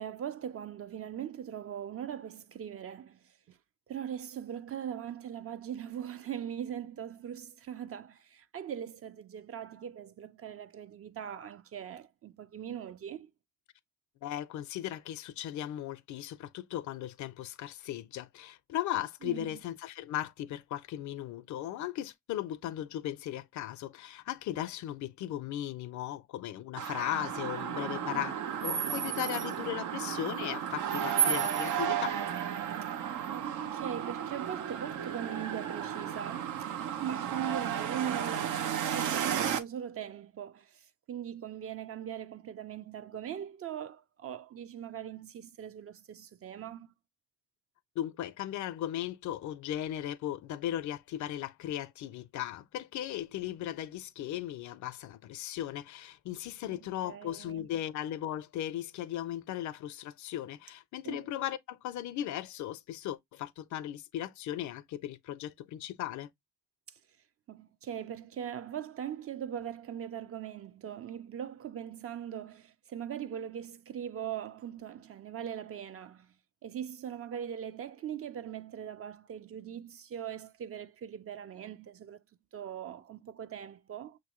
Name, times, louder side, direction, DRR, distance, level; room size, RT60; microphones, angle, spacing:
voice 1, 0.0-3.6 3.9-13.3 19.2-19.5 27.8-28.2 28.9-29.0 33.3-36.7 37.0-40.7 41.1-46.9 56.7-57.7 61.0-61.2 67.5-76.3 76.6-82.2 82.5-84.2, right 9 dB, 50° right, 0.5 m, -40 dB
voice 2, 14.2-32.2 48.0-66.3, left 12 dB, 70° left, 0.5 m, -37 dB
sound 1, 26.8-39.6, right 9 dB, 80° right, 0.7 m, -33 dB
6.2 x 2.6 x 3.0 m
cardioid pair, 90°, 30 cm